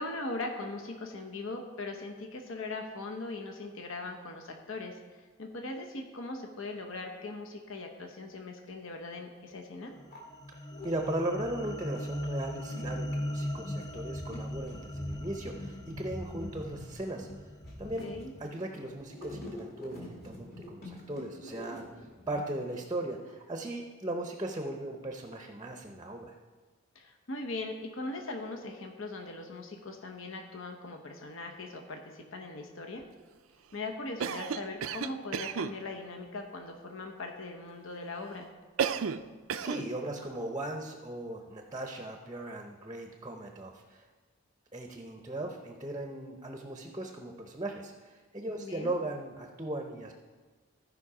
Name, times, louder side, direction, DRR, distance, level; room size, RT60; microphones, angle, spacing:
voice 1, 0.0-10.0 18.0-18.3 26.9-33.1 33.7-38.5 48.6-48.9, left 2 dB, 70° left, 3 dB, 1.0 m, -40 dB
sound 1, 9.5-9.6 9.9-10.9 11.5-22.4, left 1 dB, 45° left, 2.6 m, -45 dB
sound 2, 10.0-18.4, left 1 dB, 15° left, 0.3 m, -39 dB
voice 2, 10.8-17.4 17.8-18.1 18.4-26.4 39.6-44.0 44.7-50.1, right 1 dB, 20° right, 3 dB, 0.6 m, -38 dB
Cough, 34.2-35.8 38.8-39.2 39.5-39.9, right 7 dB, 75° right, 0.4 m, -32 dB
14.5 x 5.3 x 4.8 m, 1.4 s
head